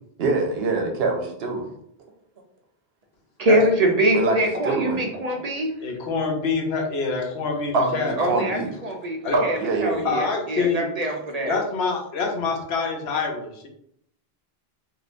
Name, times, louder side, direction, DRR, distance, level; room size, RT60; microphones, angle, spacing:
voice 1, 0.2-1.7 4.1-4.4 4.6-5.0 5.3-5.4 7.7-8.7 9.3-10.1, right 3 dB, 75° right, 3 dB, 0.9 m, -24 dB
voice 2, 3.4-5.7 8.2-11.6, right 1 dB, 50° right, 2 dB, 0.5 m, -24 dB
voice 3, 5.8-8.2 9.2-9.4 10.0-10.9 11.4-13.7, left 4 dB, 90° left, 2 dB, 0.9 m, -26 dB
3.7 x 2.4 x 2.4 m, 0.70 s
omnidirectional pair, 1.0 m